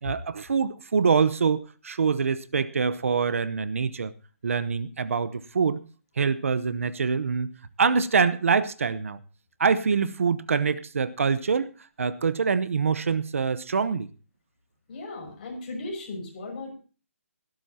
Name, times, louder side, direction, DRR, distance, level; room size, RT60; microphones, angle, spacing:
voice 1, 0.0-4.1 4.4-5.8 6.2-7.5 7.8-9.2 9.6-11.7 12.0-14.1, right 5 dB, 65° right, 15 dB, 1.0 m, -25 dB
voice 2, 14.9-16.7, left 2 dB, 35° left, 0 dB, 6.3 m, -36 dB
20.0 x 12.5 x 2.9 m, 0.36 s
hypercardioid pair, 170°, 8 cm